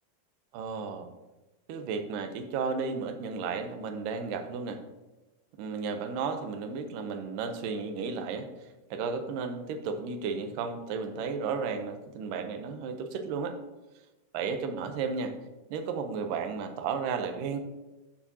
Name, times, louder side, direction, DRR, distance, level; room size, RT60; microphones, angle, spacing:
voice 1, 0.5-1.1 1.7-4.8 5.6-13.6 14.3-15.4 15.7-17.6, right 5 dB, 75° right, 7 dB, 2.2 m, -33 dB
14.0 x 4.8 x 2.8 m, 1.1 s
omnidirectional pair, 4.1 m